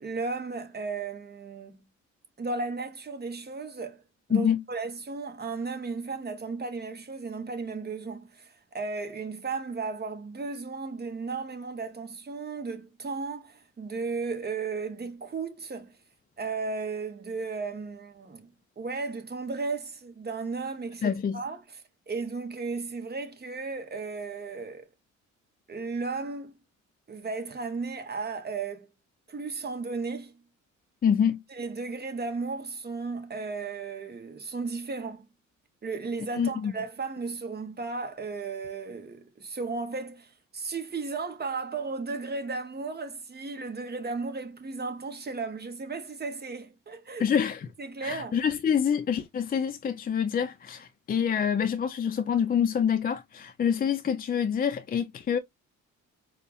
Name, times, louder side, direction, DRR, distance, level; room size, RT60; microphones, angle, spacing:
voice 1, 0.0-1.8 2.4-4.0 4.3-15.9 16.4-18.5 18.8-24.8 25.7-26.5 27.1-28.9 29.3-30.3 31.5-35.2 35.8-47.3 47.8-48.4, right 4 dB, 35° right, 1.2 m, -35 dB
voice 2, 4.3-4.6 21.0-21.4 31.0-31.4 36.3-36.7 47.2-47.7 48.0-55.4, left 8 dB, 30° left, 0.4 m, -26 dB
4.4 x 2.4 x 3.4 m
cardioid pair, 90°, 30 cm